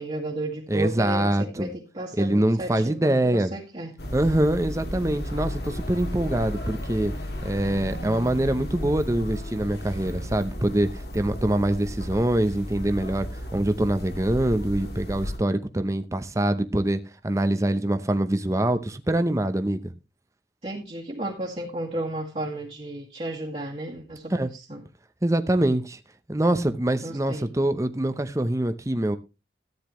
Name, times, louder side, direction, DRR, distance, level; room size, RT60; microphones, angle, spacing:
voice 1, 0.0-3.9 20.6-24.8 27.0-27.5, right 1 dB, 35° right, -4 dB, 1.9 m, -33 dB
voice 2, 0.7-1.7 2.2-3.5 4.1-7.1 7.4-10.9 11.1-17.0 17.2-19.8 24.3-24.5 25.2-26.0 26.3-29.2, right 1 dB, 15° right, 9 dB, 0.7 m, -24 dB
sound 1, 4.0-15.4, equal, 60° left, 2.2 m, -34 dB
13.5 x 9.7 x 3.1 m, 0.28 s
head